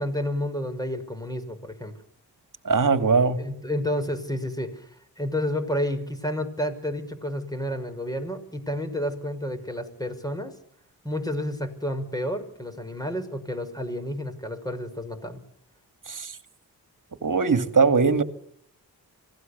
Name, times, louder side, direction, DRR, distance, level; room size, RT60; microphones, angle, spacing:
voice 1, 0.0-2.0 3.4-4.9 5.2-10.5 11.0-15.4, left 1 dB, 10° left, 5.8 m, -30 dB
voice 2, 2.7-3.4 16.1-16.3 17.2-18.2, right 4 dB, 50° right, 2.3 m, -20 dB
25.5 x 17.5 x 6.9 m
cardioid pair, 50°, 39 cm